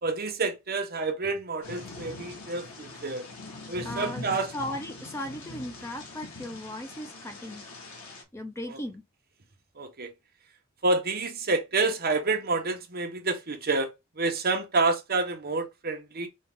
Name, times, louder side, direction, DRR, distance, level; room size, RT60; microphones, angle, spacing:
voice 1, 0.0-3.3 3.7-4.5 8.7-8.8 9.8-10.1 10.8-13.9 14.2-16.3, right 3 dB, 45° right, 1.0 m, -28 dB
Thunder / Rain, 1.6-8.2, left 2 dB, 85° left, 1.4 m, -42 dB
voice 2, 3.8-4.2 4.5-7.6 8.3-9.0, left 1 dB, 15° left, 0.5 m, -37 dB
5.3 x 2.4 x 3.6 m
head